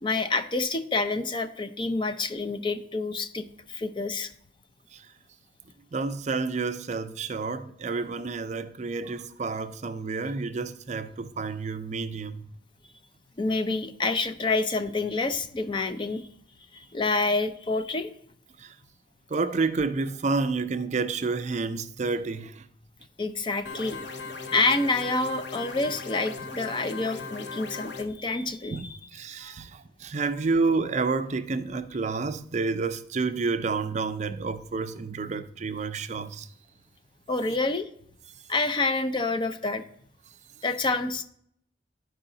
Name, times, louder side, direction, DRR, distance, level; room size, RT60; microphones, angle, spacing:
voice 1, 0.0-4.3 13.4-16.3 16.7-18.1 23.2-24.0 24.5-29.0 29.4-29.6 37.3-37.9 38.5-39.8 40.6-41.2, left 3 dB, 25° left, 0.4 m, -28 dB
voice 2, 5.9-12.5 18.6-18.7 19.3-22.6 28.7-36.5, right 4 dB, 40° right, 0.4 m, -29 dB
sound 1, 23.7-28.0, left 4 dB, 65° left, 0.8 m, -38 dB
12.0 x 4.8 x 3.8 m
head